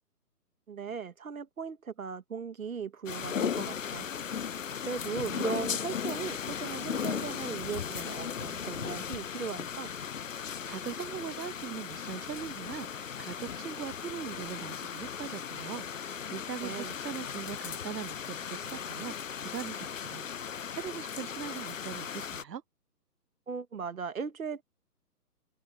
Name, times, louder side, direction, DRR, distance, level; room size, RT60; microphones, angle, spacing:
voice 1, 0.7-4.1 4.8-9.9 16.6-16.9 23.5-24.6, right 6 dB, 60° right, 2.1 m, -38 dB
sound 1, 3.1-22.4, left 7 dB, 55° left, 0.6 m, -37 dB
voice 2, 10.3-22.6, right 8 dB, 90° right, 1.0 m, -41 dB
open air
hypercardioid pair, 175°, 48 cm